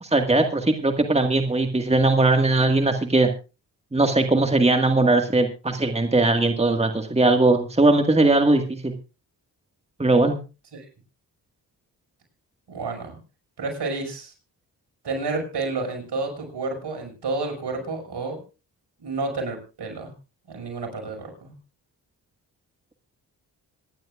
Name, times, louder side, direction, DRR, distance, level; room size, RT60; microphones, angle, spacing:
voice 1, 0.0-3.3 3.9-8.9 10.0-10.4, right 2 dB, 15° right, 5 dB, 1.8 m, -20 dB
voice 2, 12.7-13.2 13.6-14.3 15.0-18.4 19.0-20.1 20.5-21.6, right 3 dB, 70° right, 2 dB, 6.0 m, -30 dB
25.5 x 11.0 x 2.5 m, 0.31 s
cardioid pair, 55°, 42 cm